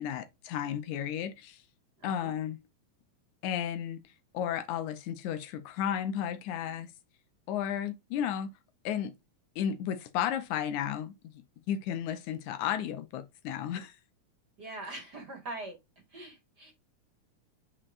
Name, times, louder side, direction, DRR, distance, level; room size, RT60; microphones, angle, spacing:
voice 1, 0.0-1.6 2.0-2.6 3.4-4.0 4.3-6.9 7.5-8.5 8.9-9.1 9.6-11.1 11.7-13.9, left 9 dB, 80° left, 2.1 m, -33 dB
voice 2, 2.0-2.3 14.6-15.8 16.1-16.7, right 2 dB, 40° right, 1.9 m, -42 dB
8.8 x 4.4 x 2.4 m
omnidirectional pair, 3.6 m